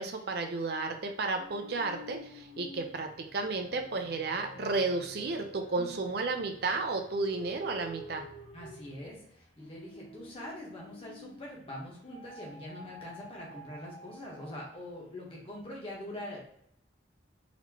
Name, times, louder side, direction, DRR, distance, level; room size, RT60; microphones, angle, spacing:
voice 1, 0.0-8.2, right 3 dB, 55° right, 4 dB, 0.5 m, -33 dB
sound 1, 1.4-11.6 12.1-14.9, equal, 80° left, 1.4 m, -50 dB
voice 2, 8.5-16.5, left 1 dB, 30° left, -3 dB, 1.2 m, -43 dB
4.2 x 2.8 x 2.9 m, 0.70 s
head